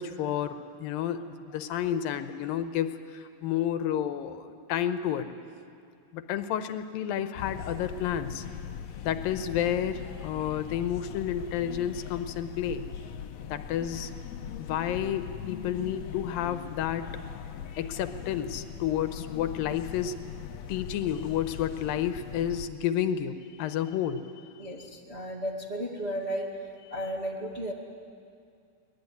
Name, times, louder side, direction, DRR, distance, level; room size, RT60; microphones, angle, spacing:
voice 1, 0.0-5.3 6.1-8.4 9.0-12.9 13.5-14.1 14.6-17.1 17.8-20.2 20.7-24.5, left 10 dB, 85° left, 10 dB, 2.7 m, -31 dB
sound 1, 7.4-22.7, left 8 dB, 70° left, 1.7 m, -40 dB
voice 2, 24.6-26.5 26.9-27.7, equal, 20° right, -4 dB, 2.0 m, -34 dB
24.0 x 19.5 x 9.5 m, 2.3 s
omnidirectional pair, 4.0 m